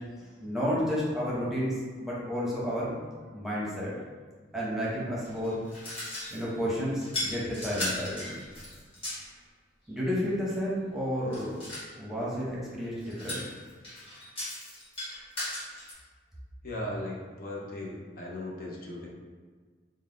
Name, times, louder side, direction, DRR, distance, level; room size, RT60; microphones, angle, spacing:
voice 1, 0.2-1.7 2.0-2.9 3.3-3.9 4.5-5.6 6.3-8.4 9.9-11.6 12.0-13.4, equal, ahead, -7 dB, 0.8 m, -31 dB
sound 1, 5.2-6.5 7.0-9.3 11.3-11.9 13.0-15.9, left 1 dB, 30° left, 1.4 m, -37 dB
voice 2, 16.6-19.1, left 1 dB, 50° left, -3 dB, 0.6 m, -37 dB
3.9 x 2.1 x 3.7 m, 1.5 s
head